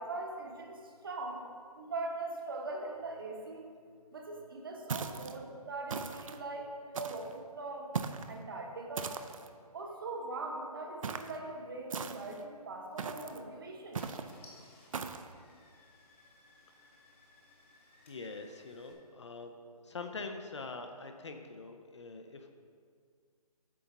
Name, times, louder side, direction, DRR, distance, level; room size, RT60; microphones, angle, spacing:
voice 1, 0.0-1.4 1.7-3.6 4.1-7.9 8.3-9.2 9.7-14.0, right 2 dB, 35° right, 2 dB, 0.9 m, -41 dB
sound 1, 4.9-5.4 5.9-6.4 6.9-7.4 7.9-8.3 9.0-9.5 11.0-11.4 11.9-12.4 13.0-13.4 13.9-14.3 14.9-15.3, right 5 dB, 55° right, 0.5 m, -39 dB
Car / Engine starting, 12.9-13.1 13.7-13.8 14.0-18.9, left 2 dB, 20° left, 0.8 m, -61 dB
voice 2, 18.1-22.5, left 3 dB, 45° left, 6 dB, 0.6 m, -44 dB
8.4 x 3.9 x 5.8 m, 2.1 s
hypercardioid pair, 170°, 20 cm